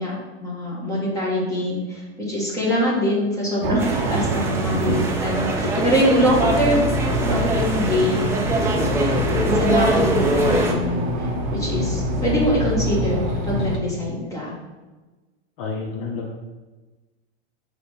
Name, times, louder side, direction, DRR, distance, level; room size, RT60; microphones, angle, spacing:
voice 1, 0.0-9.1 9.5-14.6, equal, 10° left, -6 dB, 1.7 m, -24 dB
sound 1, 3.6-13.8, right 5 dB, 45° right, 0.7 m, -31 dB
sound 2, 3.8-10.7, right 1 dB, 5° right, 0.4 m, -23 dB
voice 2, 4.7-5.0 5.7-5.9 15.6-16.3, left 5 dB, 50° left, 1 dB, 0.8 m, -28 dB
sound 3, 6.3-13.8, left 1 dB, 75° left, 1.2 m, -26 dB
5.0 x 3.5 x 5.5 m, 1.2 s
supercardioid pair, 160°, 35 cm